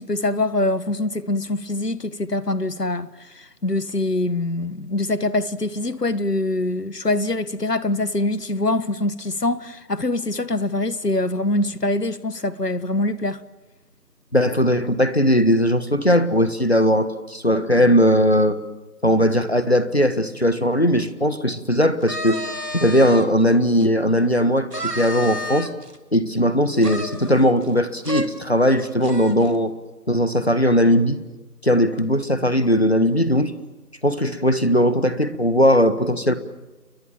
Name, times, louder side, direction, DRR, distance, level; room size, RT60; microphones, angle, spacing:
voice 1, 0.0-13.4, left 2 dB, 75° left, 1.6 m, -24 dB
voice 2, 14.3-18.6 19.0-22.4 22.7-25.7 26.1-29.7 30.1-31.2 31.6-33.5 34.0-36.3, equal, 40° left, 1.6 m, -19 dB
sound 1, 22.0-23.3 23.8-23.9 24.7-26.0 26.8-27.8 28.0-28.3 28.6-28.7 29.0-29.5, equal, 75° right, 3.0 m, -31 dB
30.0 x 23.0 x 7.3 m
figure-of-eight pair, 175°, 48 cm